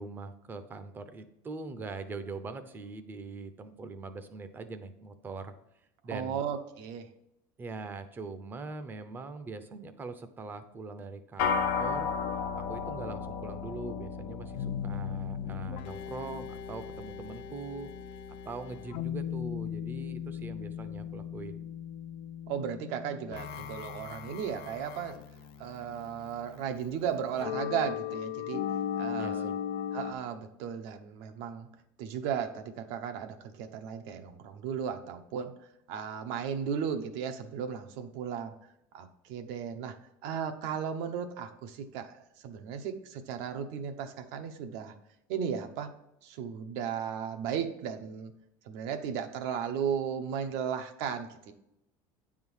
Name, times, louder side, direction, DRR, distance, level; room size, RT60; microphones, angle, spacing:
voice 1, 0.0-5.5 6.0-6.4 7.6-12.1 12.7-17.9 18.4-21.7 29.1-29.5, right 3 dB, 20° right, 9 dB, 0.6 m, -42 dB
voice 2, 6.1-7.1 22.5-25.2 25.6-28.6 29.0-29.5 29.9-31.7 32.0-35.5 35.9-38.5 38.9-40.0 40.2-44.9 45.3-45.9 46.2-48.3 48.6-51.5, right 7 dB, 70° right, 7 dB, 0.9 m, -35 dB
sound 1, 11.4-20.9, left 5 dB, 90° left, 1.0 m, -36 dB
sound 2, 14.5-30.1, left 9 dB, 60° left, 0.6 m, -38 dB
9.5 x 3.7 x 6.2 m, 0.84 s
cardioid pair, 155°, 10 cm